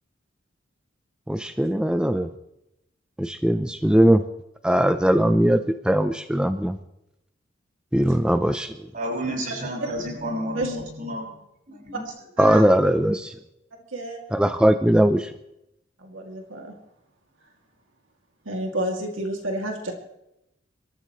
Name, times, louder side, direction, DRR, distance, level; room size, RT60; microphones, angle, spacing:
voice 1, 1.3-2.3 3.2-4.2 4.6-6.8 7.9-8.8 12.4-13.3 14.3-15.3, right 1 dB, 5° right, 9 dB, 0.5 m, -20 dB
voice 2, 8.9-11.4 11.7-12.1, equal, 45° right, -2 dB, 6.5 m, -31 dB
voice 3, 12.4-12.7 13.9-14.2 16.0-16.7 18.5-19.9, right 1 dB, 90° right, 1 dB, 2.4 m, -30 dB
26.0 x 13.5 x 3.1 m, 0.85 s
head